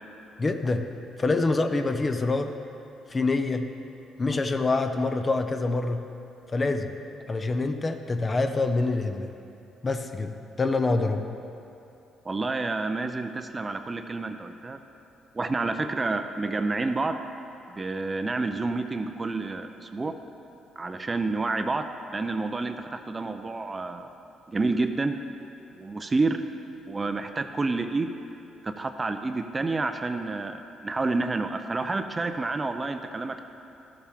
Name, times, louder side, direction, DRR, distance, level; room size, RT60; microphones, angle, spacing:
voice 1, 0.4-0.8 1.2-2.5 3.1-3.7 4.2-6.0 6.5-6.9 7.3-9.3 9.8-10.3 10.6-11.3, left 3 dB, 30° left, 7 dB, 0.6 m, -26 dB
voice 2, 12.2-14.8 15.3-17.2 17.7-20.1 20.8-21.9 22.1-24.1 24.5-25.2 25.7-26.4 26.9-28.2 28.6-33.4, right 3 dB, 30° right, 7 dB, 0.5 m, -29 dB
13.0 x 7.2 x 3.5 m, 2.8 s
supercardioid pair, 70°, 0 cm